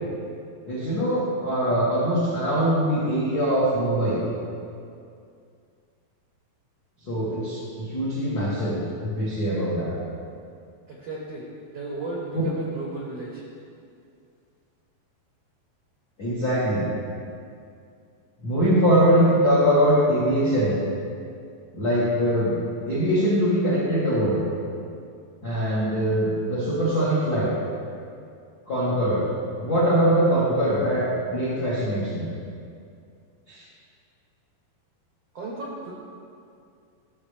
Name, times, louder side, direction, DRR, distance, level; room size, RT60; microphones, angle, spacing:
voice 1, 0.7-4.2 7.0-9.9 12.3-12.4 16.2-16.9 18.4-20.8 21.7-22.5 22.8-24.4 25.4-27.5 28.7-29.2 29.6-32.3 33.5-33.6, equal, 90° left, -8 dB, 0.8 m, -22 dB
voice 2, 10.9-11.4 11.7-13.4 35.3-35.9, right 2 dB, 85° right, -4 dB, 1.3 m, -34 dB
13.5 x 7.4 x 3.4 m, 2.4 s
omnidirectional pair, 4.7 m